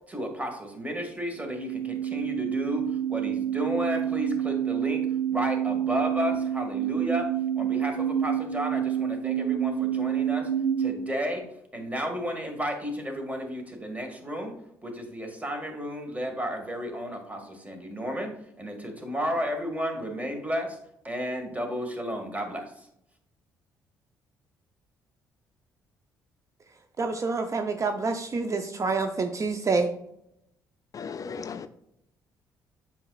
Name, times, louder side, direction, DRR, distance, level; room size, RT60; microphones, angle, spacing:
voice 1, 0.1-2.8 3.1-5.0 5.3-7.3 7.5-10.5 10.8-11.4 11.7-14.5 14.8-18.3 18.6-20.8 21.0-22.9, equal, 15° right, 4 dB, 1.8 m, -32 dB
sound 1, 1.4-11.0, right 10 dB, 75° right, 0.8 m, -28 dB
voice 2, 27.0-29.9, right 4 dB, 40° right, 6 dB, 0.6 m, -27 dB
voice 3, 30.9-31.7, left 6 dB, 45° left, 10 dB, 0.4 m, -36 dB
7.7 x 5.6 x 2.4 m, 0.78 s
supercardioid pair, 60°, 8 cm